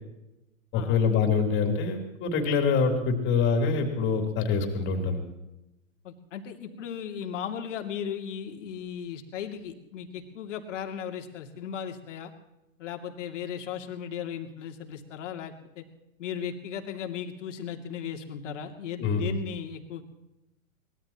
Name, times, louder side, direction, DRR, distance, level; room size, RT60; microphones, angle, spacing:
voice 1, 0.7-5.2 19.0-19.3, left 5 dB, 30° left, 3 dB, 3.4 m, -25 dB
voice 2, 6.0-12.3 12.8-15.8 16.2-20.0, left 8 dB, 65° left, 4 dB, 2.7 m, -36 dB
23.5 x 20.0 x 3.0 m, 0.93 s
hypercardioid pair, 140°, 40 cm